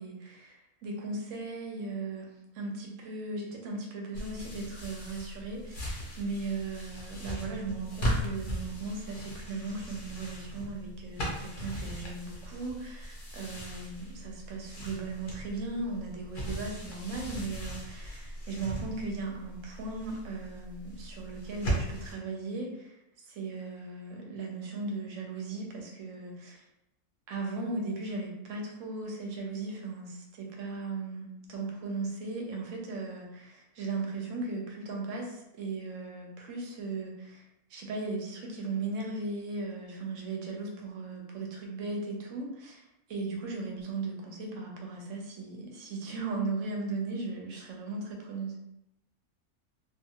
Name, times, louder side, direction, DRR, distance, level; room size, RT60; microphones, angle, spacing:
voice 1, 0.0-2.3 2.5-23.0 23.3-26.6 27.3-48.6, right 3 dB, 65° right, 0 dB, 0.8 m, -37 dB
sound 1, 4.1-22.1, equal, 55° left, 0.6 m, -38 dB
2.5 x 2.4 x 2.8 m, 0.87 s
omnidirectional pair, 1.6 m